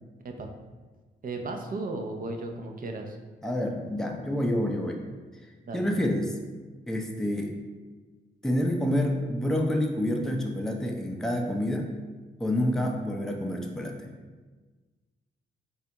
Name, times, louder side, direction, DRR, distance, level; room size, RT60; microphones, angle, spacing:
voice 1, 1.2-3.2 5.7-5.9, right 2 dB, 45° right, 3 dB, 0.5 m, -35 dB
voice 2, 3.4-5.0 5.7-6.3 6.9-7.5 8.4-11.9 12.4-14.1, left 1 dB, ahead, 1 dB, 0.5 m, -28 dB
4.1 x 2.4 x 2.8 m, 1.3 s
supercardioid pair, 45°, 21 cm